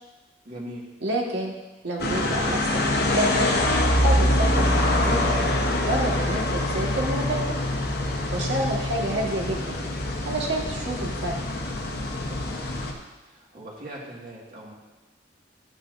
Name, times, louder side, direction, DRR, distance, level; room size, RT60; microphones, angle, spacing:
voice 1, 0.5-0.9 12.3-12.5 13.3-14.7, right 1 dB, 50° right, -4 dB, 1.9 m, -40 dB
voice 2, 1.0-1.5 1.8-3.5 4.0-5.4 5.8-7.4 8.3-9.8 10.2-11.4, right 1 dB, 70° right, -1 dB, 1.7 m, -28 dB
sound 1, 2.0-12.9, left 1 dB, 55° left, 1.1 m, -24 dB
12.0 x 8.9 x 2.6 m, 1.1 s
head